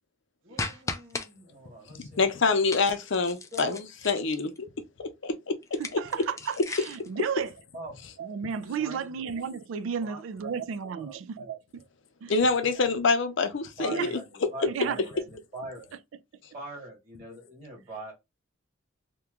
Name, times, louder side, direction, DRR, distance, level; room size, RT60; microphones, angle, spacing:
voice 1, 0.4-2.3 3.5-3.8 4.1-4.2 7.7-8.0 8.8-9.1 10.0-10.6 10.9-11.5 13.8-15.9 16.5-18.1, right 1 dB, 35° right, 1.6 m, -43 dB
sound 1, 0.6-1.3 2.7-4.6 5.6-7.1, left 3 dB, 15° left, 0.3 m, -37 dB
voice 2, 2.0-4.7 5.0-5.5 5.9-6.0 12.3-14.2 14.6-14.7, left 4 dB, 65° left, 0.6 m, -26 dB
voice 3, 5.8-7.5 8.2-11.8 12.2-12.3 13.9-14.1 14.6-15.0, right 6 dB, 75° right, 0.3 m, -33 dB
2.9 x 2.3 x 3.5 m
head